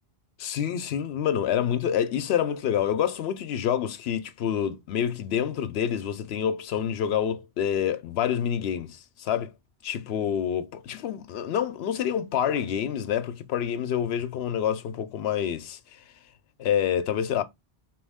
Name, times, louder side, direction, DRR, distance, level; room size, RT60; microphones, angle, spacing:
voice 1, 0.4-9.5 9.8-15.8 16.6-17.4, left 9 dB, 80° left, 0.8 m, -27 dB
4.5 x 3.1 x 3.5 m
omnidirectional pair, 1.0 m